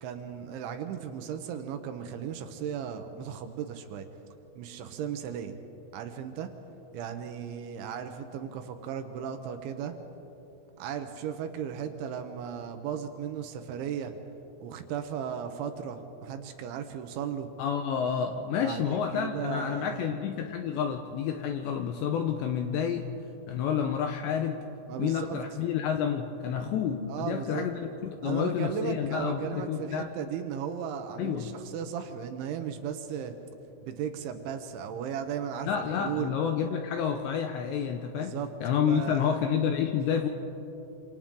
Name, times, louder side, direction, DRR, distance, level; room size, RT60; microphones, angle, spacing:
voice 1, 0.0-4.1 4.6-5.6 5.9-6.5 6.9-9.9 10.8-14.2 14.6-17.5 18.6-20.0 24.9-25.7 27.1-27.7 28.2-33.3 33.8-36.3 38.2-39.4, right 8 dB, 75° right, 7 dB, 3.1 m, -36 dB
voice 2, 17.6-23.1 23.5-24.6 25.0-30.1 31.2-31.5 35.6-40.3, left 8 dB, 80° left, 5 dB, 2.6 m, -29 dB
27.0 x 27.0 x 3.8 m, 3.0 s
omnidirectional pair, 5.9 m